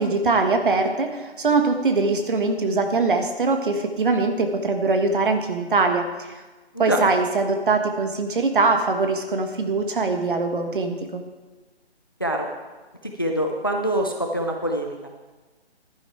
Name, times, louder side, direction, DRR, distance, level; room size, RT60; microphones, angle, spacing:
voice 1, 0.0-6.3 6.8-11.2, right 3 dB, 50° right, 5 dB, 1.6 m, -22 dB
voice 2, 6.7-7.0 12.2-12.5 13.0-15.1, right 1 dB, 20° left, 3 dB, 0.5 m, -25 dB
11.5 x 10.5 x 4.5 m, 1.2 s
hypercardioid pair, 165°, 32 cm